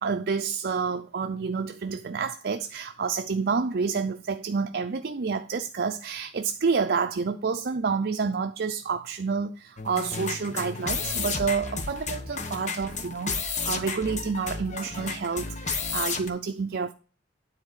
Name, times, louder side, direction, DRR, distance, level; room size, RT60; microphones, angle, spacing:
voice 1, 0.0-16.9, right 5 dB, 55° right, 0.5 m, -29 dB
sound 1, 9.8-16.3, left 4 dB, 40° left, 1.1 m, -32 dB
9.9 x 4.0 x 6.4 m
head